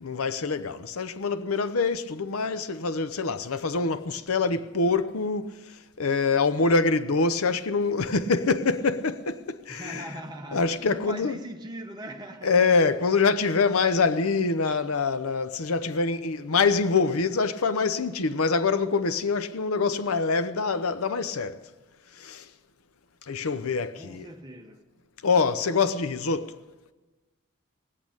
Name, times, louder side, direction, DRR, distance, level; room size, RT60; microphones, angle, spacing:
voice 1, 0.0-10.1 10.5-11.4 12.4-21.6 22.2-22.5 23.3-24.3 25.2-26.6, left 4 dB, 90° left, 0.7 m, -25 dB
voice 2, 9.7-12.6 12.9-13.0 24.0-24.8, right 1 dB, 20° right, 1.2 m, -40 dB
18.5 x 8.4 x 8.8 m
head